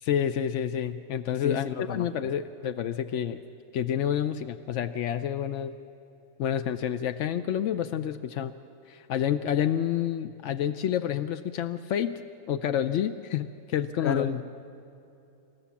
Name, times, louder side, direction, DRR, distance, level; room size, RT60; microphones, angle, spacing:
voice 1, 0.0-3.4 3.7-5.7 6.4-8.5 8.9-12.2 12.5-14.3, left 9 dB, 75° left, 10 dB, 0.6 m, -29 dB
voice 2, 1.4-2.1 14.0-14.4, left 7 dB, 50° left, 9 dB, 0.9 m, -30 dB
27.0 x 14.0 x 7.2 m, 2.8 s
omnidirectional pair, 1.9 m